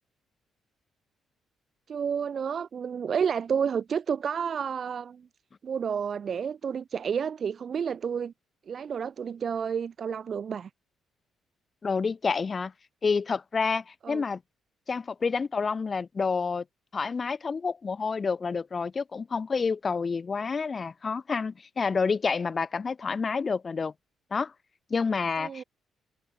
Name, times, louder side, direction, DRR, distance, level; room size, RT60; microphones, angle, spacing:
voice 1, 1.9-5.3 5.6-8.3 8.7-10.7 14.0-14.2 25.4-25.6, right 7 dB, 50° right, 1.8 m, -30 dB
voice 2, 11.8-12.7 13.0-14.4 14.9-16.6 16.9-23.9 24.3-24.5 24.9-25.6, left 5 dB, 35° left, 2.0 m, -28 dB
cardioid pair, 90°, 0 cm